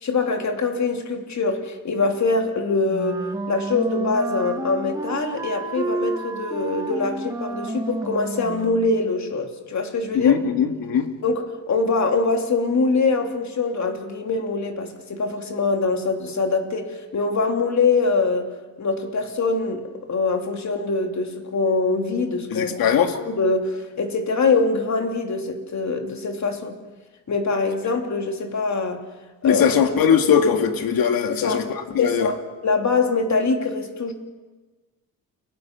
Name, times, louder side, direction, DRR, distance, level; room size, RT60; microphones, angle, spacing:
voice 1, 0.0-10.3 11.2-18.5 18.8-22.8 23.3-26.8 27.3-29.0 29.4-29.8 31.2-31.6 32.0-34.1, left 3 dB, 50° left, 3.1 m, -23 dB
Wind instrument woodwind instrument, 2.9-9.1, right 2 dB, 10° right, 2.5 m, -30 dB
voice 2, 10.1-11.1 22.5-23.2 29.4-32.3, left 7 dB, 80° left, 2.2 m, -20 dB
29.0 x 18.5 x 6.1 m
cardioid pair, 80°, 35 cm